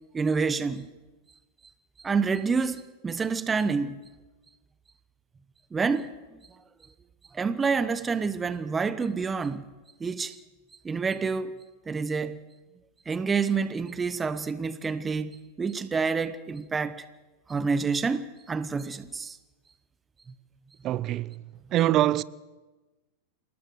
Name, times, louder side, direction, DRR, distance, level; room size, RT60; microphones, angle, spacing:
voice 1, 0.1-0.9 2.0-4.0 5.7-6.1 7.3-9.6 10.0-10.4 10.8-11.5 11.9-12.4 13.1-17.0 17.5-19.4, right 5 dB, 20° right, 1.1 m, -28 dB
voice 2, 20.8-21.4 21.7-22.2, right 13 dB, 40° right, 0.8 m, -24 dB
27.5 x 19.5 x 6.6 m
hypercardioid pair, 100°, 0 cm